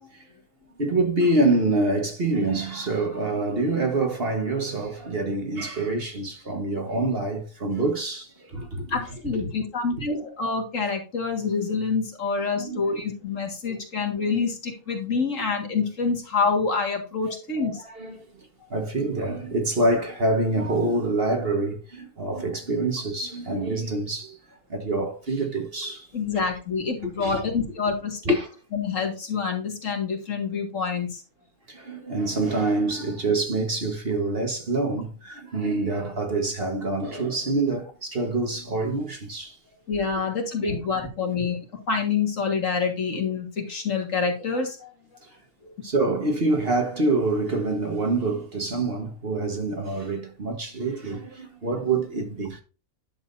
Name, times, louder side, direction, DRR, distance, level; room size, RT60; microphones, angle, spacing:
voice 1, 0.8-9.0 9.3-9.5 9.9-10.0 12.6-13.0 13.7-13.8 17.8-18.2 18.7-24.4 24.7-26.1 26.3-26.5 27.0-27.5 28.2-28.5 31.7-39.6 40.6-40.8 45.8-52.6, right 2 dB, 45° right, 1.6 m, -26 dB
voice 2, 8.9-17.8 26.1-28.2 28.7-31.2 39.9-41.6 41.9-44.9 45.6-45.7, left 5 dB, 60° left, 2.3 m, -27 dB
10.5 x 7.4 x 2.7 m
omnidirectional pair, 1.5 m